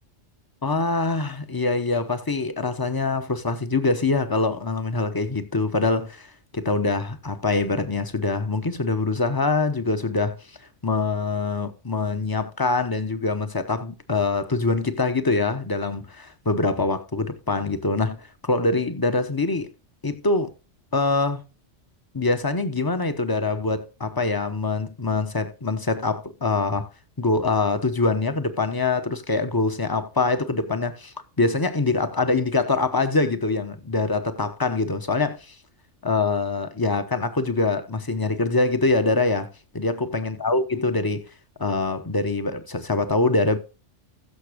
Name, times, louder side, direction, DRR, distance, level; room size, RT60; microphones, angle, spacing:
voice 1, 0.6-6.3 6.5-10.4 10.8-19.7 20.0-20.5 20.9-21.4 22.1-26.9 27.2-35.5 36.0-41.3 41.6-43.6, left 3 dB, 20° left, 0.8 m, -24 dB
13.0 x 6.0 x 4.9 m
omnidirectional pair, 1.3 m